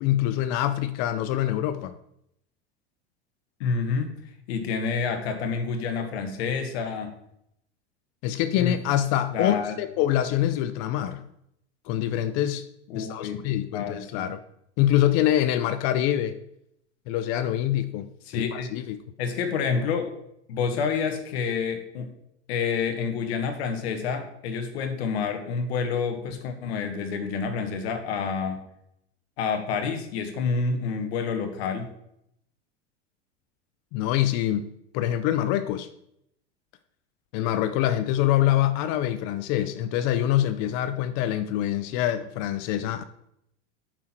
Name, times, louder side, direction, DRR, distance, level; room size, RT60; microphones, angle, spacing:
voice 1, 0.0-1.9 8.2-11.2 11.9-12.6 12.9-14.4 14.8-16.4 17.1-19.0 33.9-34.7 34.9-35.9 37.3-43.0, left 12 dB, 50° left, 13 dB, 0.5 m, -25 dB
voice 2, 3.6-4.1 4.5-7.2 8.6-8.7 9.3-9.7 12.9-13.4 13.7-14.3 18.3-18.7 19.2-20.1 20.5-22.1 22.5-28.6 29.4-31.9, left 5 dB, 70° left, 7 dB, 1.4 m, -28 dB
6.1 x 5.9 x 4.4 m, 0.77 s
hypercardioid pair, 100°, 33 cm